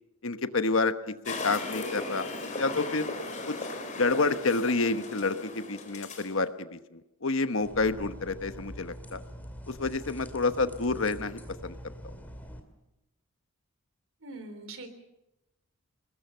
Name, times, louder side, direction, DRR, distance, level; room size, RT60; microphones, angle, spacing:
voice 1, 0.2-2.3 2.6-3.1 3.5-3.6 4.0-9.2 9.7-11.8, left 3 dB, 65° left, 10 dB, 1.1 m, -29 dB
sound 1, 1.3-6.3, left 2 dB, 35° left, 3.9 m, -37 dB
sound 2, 7.6-12.6, equal, 10° left, 2.5 m, -44 dB
voice 2, 14.2-14.9, right 2 dB, 70° right, 9 dB, 3.4 m, -42 dB
29.5 x 20.5 x 5.7 m, 0.94 s
head